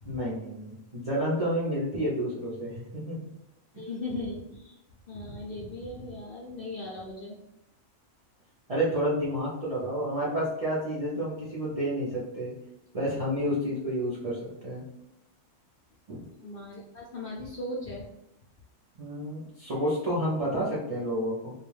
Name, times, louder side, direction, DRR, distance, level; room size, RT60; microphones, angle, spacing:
voice 1, 0.0-3.2 8.7-12.5 12.9-14.8 19.0-21.5, equal, 45° right, -7 dB, 0.4 m, -30 dB
voice 2, 3.7-4.8 5.1-7.4 16.4-18.1, left 2 dB, 65° left, -4 dB, 0.6 m, -38 dB
2.3 x 2.2 x 3.2 m, 0.86 s
omnidirectional pair, 1.3 m